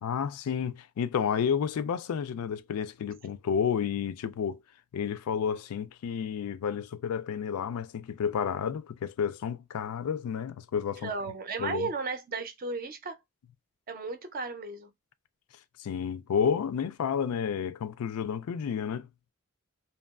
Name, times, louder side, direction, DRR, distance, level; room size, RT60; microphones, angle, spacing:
voice 1, 0.0-4.6 4.9-11.1 11.6-11.9 15.8-19.1, left 7 dB, 80° left, 0.3 m, -31 dB
voice 2, 11.0-13.2 13.9-14.9, right 4 dB, 40° right, 0.5 m, -34 dB
2.8 x 2.3 x 2.2 m
head